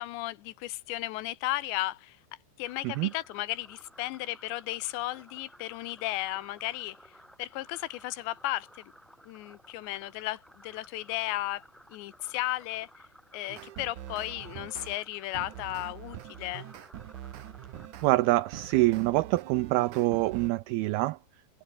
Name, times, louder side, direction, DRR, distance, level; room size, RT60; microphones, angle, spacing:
voice 1, 0.0-2.2 2.6-7.1 7.4-8.9 9.3-11.6 11.9-12.9 13.3-16.7, left 17 dB, 80° left, 3.2 m, -34 dB
sound 1, 2.6-18.8, equal, ahead, 6.0 m, -56 dB
sound 2, 13.5-15.0 15.3-20.5, right 12 dB, 60° right, 2.2 m, -44 dB
voice 2, 18.0-21.2, right 19 dB, 85° right, 2.2 m, -25 dB
omnidirectional pair, 5.1 m